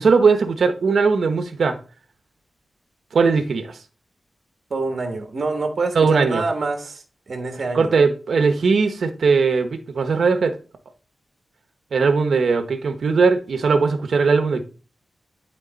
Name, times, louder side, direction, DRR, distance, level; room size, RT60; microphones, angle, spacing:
voice 1, 0.0-1.8 3.1-3.8 5.9-6.4 7.7-10.6 11.9-14.6, right 4 dB, 65° right, 0.9 m, -19 dB
voice 2, 4.7-7.9, right 3 dB, 45° right, 1.3 m, -26 dB
11.0 x 3.9 x 4.0 m
wide cardioid pair, 175°, 0 cm